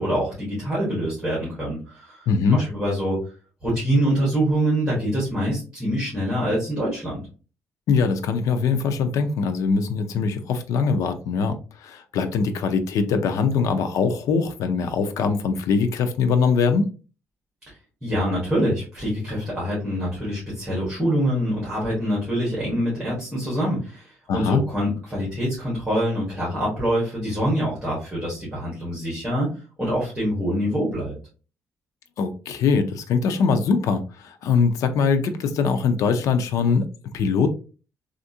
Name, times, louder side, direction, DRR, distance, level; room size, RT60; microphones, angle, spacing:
voice 1, 0.0-2.3 2.5-3.2 3.6-7.2 18.0-29.5 29.8-31.1, equal, 5° right, -6 dB, 1.5 m, -25 dB
voice 2, 2.3-2.6 7.9-11.6 11.8-16.9 24.3-24.6 32.2-37.5, left 5 dB, 75° left, 8 dB, 0.5 m, -22 dB
3.3 x 2.5 x 2.7 m, 0.35 s
cardioid pair, 140°, 6 cm